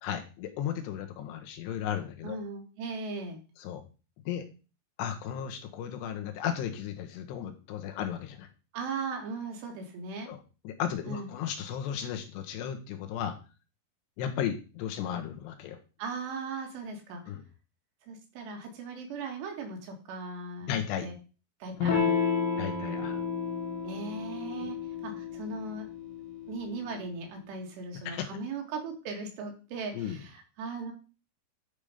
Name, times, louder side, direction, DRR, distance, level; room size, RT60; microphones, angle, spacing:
voice 1, 0.0-2.4 3.6-3.8 4.3-4.4 5.0-8.5 10.3-13.4 14.2-15.8 17.3-17.4 20.7-21.1 22.6-23.2 24.6-24.7 28.1-28.3 29.9-30.2, left 9 dB, 80° left, 5 dB, 3.3 m, -35 dB
voice 2, 2.2-3.4 8.7-10.3 11.1-11.3 16.0-17.2 18.1-20.8 21.0-21.2 21.6-22.2 23.8-24.8 25.0-25.9 26.5-30.9, right 4 dB, 75° right, 2 dB, 4.2 m, -38 dB
Electric guitar / Strum, 21.8-26.9, left 6 dB, 60° left, 3.2 m, -32 dB
10.5 x 5.1 x 5.0 m, 0.33 s
omnidirectional pair, 5.0 m